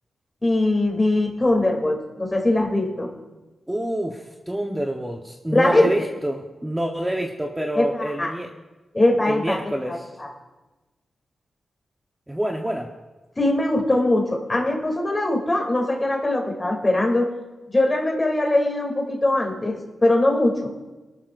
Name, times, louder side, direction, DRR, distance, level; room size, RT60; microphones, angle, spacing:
voice 1, 0.4-3.1 5.5-6.1 7.7-8.3 8.9-9.6 9.9-10.3 13.4-17.3 17.7-20.7, left 1 dB, 25° left, 0 dB, 2.8 m, -21 dB
voice 2, 3.7-8.5 9.2-10.1 12.3-12.9, right 1 dB, 10° right, 1 dB, 1.1 m, -27 dB
25.0 x 12.5 x 2.6 m, 1.2 s
cardioid pair, 80°, 0 cm